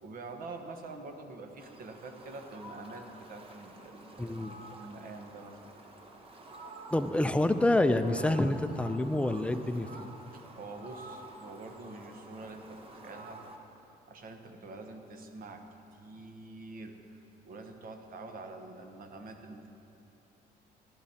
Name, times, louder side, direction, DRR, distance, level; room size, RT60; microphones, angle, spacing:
voice 1, 0.0-5.6 10.3-13.4 14.1-15.6 15.9-16.9 17.4-19.8, right 3 dB, 55° right, 5 dB, 1.1 m, -46 dB
Fowl, 1.6-13.6, right 2 dB, 35° right, 1.0 m, -50 dB
voice 2, 4.2-4.5 6.9-10.1, left 1 dB, 5° left, 9 dB, 0.4 m, -27 dB
15.0 x 12.5 x 2.8 m, 2.8 s
cardioid pair, 110°, 17 cm